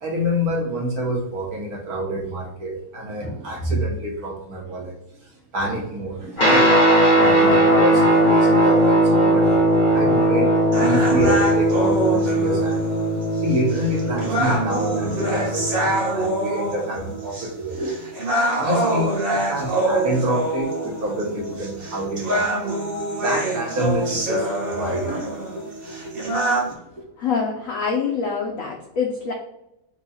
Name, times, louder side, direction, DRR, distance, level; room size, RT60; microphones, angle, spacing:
voice 1, 0.0-4.9 5.2-9.6 9.9-12.9 13.4-25.7 26.0-27.0, right 1 dB, 55° right, -2 dB, 1.2 m, -27 dB
Guitar, 6.4-16.0, right 1 dB, 25° left, 1.3 m, -18 dB
sound 1, 10.7-26.7, right 1 dB, 35° right, 1.2 m, -25 dB
voice 2, 27.2-29.3, left 5 dB, 90° left, 0 dB, 0.7 m, -25 dB
4.6 x 2.3 x 4.0 m, 0.85 s
omnidirectional pair, 2.2 m